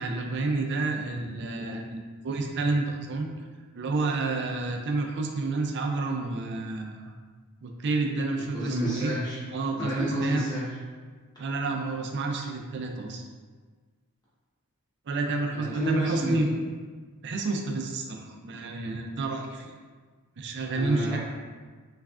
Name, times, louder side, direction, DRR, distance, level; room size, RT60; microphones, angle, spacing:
voice 1, 0.0-3.3 3.7-7.1 7.6-9.1 9.5-10.4 11.4-13.2 15.1-16.5 17.2-19.7 20.4-21.2, right 3 dB, 55° right, 2 dB, 0.4 m, -29 dB
voice 2, 8.5-9.4 9.8-10.7 15.5-16.5 20.7-21.2, right 1 dB, 20° left, -10 dB, 1.2 m, -30 dB
3.4 x 3.1 x 2.4 m, 1.5 s
head